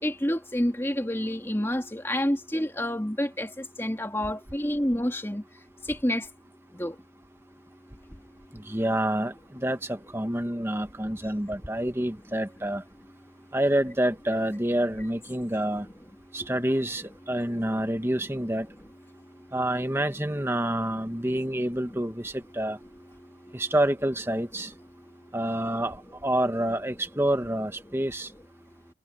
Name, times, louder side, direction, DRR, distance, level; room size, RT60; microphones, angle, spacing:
voice 1, 0.0-5.4 5.9-6.3 6.7-7.0 21.9-22.0 27.9-28.0, left 1 dB, 15° left, 2.6 m, -28 dB
voice 2, 8.5-12.8 13.5-15.9 16.3-18.7 19.5-22.8 23.5-24.7 25.3-28.3, right 1 dB, 15° right, 1.4 m, -28 dB
head